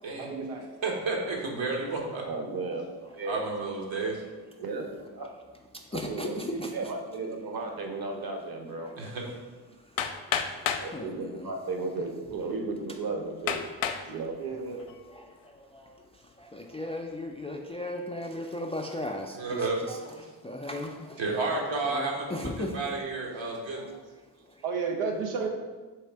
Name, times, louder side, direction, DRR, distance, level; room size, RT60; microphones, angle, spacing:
voice 1, 0.2-0.7 1.2-1.3 3.6-3.7 14.4-14.9 22.4-22.9 24.6-25.5, right 5 dB, 85° right, 2 dB, 0.6 m, -33 dB
voice 2, 0.8-2.2 3.3-4.2 9.0-9.2 19.3-19.8 21.2-23.8, right 3 dB, 65° right, -1 dB, 1.2 m, -31 dB
voice 3, 2.2-2.9 3.1-3.5 4.6-5.4 5.9-8.9 10.8-13.6 14.1-14.4, right 3 dB, 45° right, 3 dB, 0.9 m, -34 dB
voice 4, 5.9-6.7 10.0-10.1 10.9-11.5 15.2-15.3 15.7-16.0 16.4-20.0 20.4-21.2 21.9-22.8, left 1 dB, 15° left, 2 dB, 0.3 m, -36 dB
Hammer, 10.0-10.9 11.8-11.9 12.5-12.6 13.5-14.1 14.7-15.1, left 8 dB, 70° left, 0.5 m, -30 dB
3.5 x 3.2 x 4.4 m, 1.3 s
supercardioid pair, 40°, 50 cm